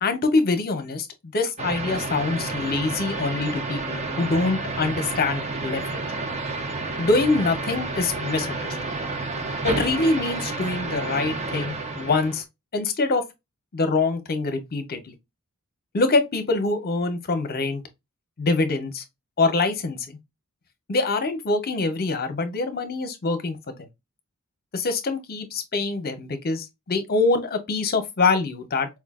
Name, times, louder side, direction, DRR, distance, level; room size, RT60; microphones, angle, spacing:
voice 1, 0.0-6.0 7.0-8.8 9.6-12.4 12.7-13.3 13.7-15.1 15.9-17.8 18.4-19.0 19.4-20.2 20.9-23.8 24.7-28.9, left 3 dB, 45° left, 0.8 m, -24 dB
sound 1, 1.6-12.4, right 3 dB, 30° right, 0.7 m, -30 dB
4.6 x 2.5 x 2.3 m
head